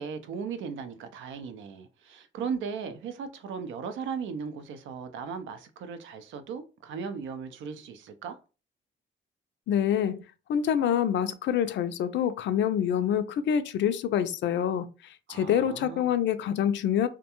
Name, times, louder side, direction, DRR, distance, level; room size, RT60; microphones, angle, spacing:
voice 1, 0.0-8.4 15.3-16.1, right 6 dB, 75° right, 0.5 m, -37 dB
voice 2, 9.7-10.2 10.5-14.9 15.3-17.1, left 9 dB, 65° left, 0.4 m, -26 dB
2.3 x 2.2 x 2.8 m
cardioid pair, 90°, 20 cm